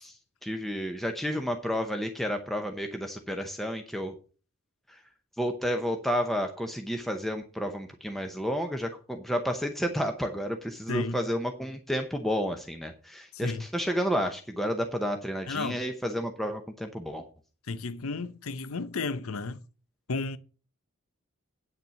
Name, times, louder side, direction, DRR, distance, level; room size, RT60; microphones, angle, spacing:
voice 1, 0.0-4.1 4.9-5.0 5.4-17.2, equal, ahead, 0.7 m, -31 dB
voice 2, 10.9-11.2 13.3-13.6 15.5-15.8 17.7-19.6 20.1-20.4, left 3 dB, 75° left, 0.7 m, -33 dB
9.0 x 6.6 x 5.7 m
head